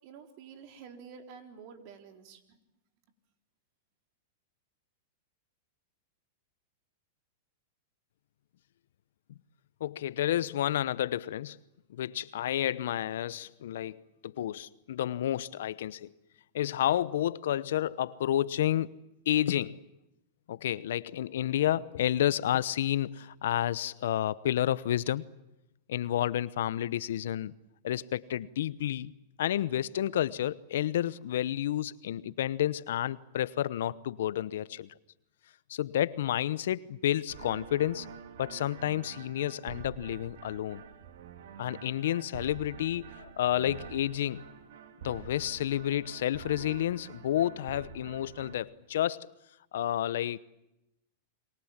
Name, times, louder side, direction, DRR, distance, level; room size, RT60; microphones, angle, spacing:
voice 1, 0.0-2.6, right 6 dB, 50° right, 4.0 m, -49 dB
voice 2, 9.8-11.6 11.9-16.1 16.5-18.9 19.3-19.8 20.5-25.2 25.9-27.5 27.8-29.1 29.4-34.9 35.7-38.1 38.4-40.8 41.6-44.4 45.0-49.3 49.7-50.5, left 12 dB, 75° left, 0.9 m, -30 dB
sound 1, 37.3-48.6, right 8 dB, 70° right, 2.3 m, -47 dB
28.5 x 23.0 x 7.4 m
hypercardioid pair, 120°, 0 cm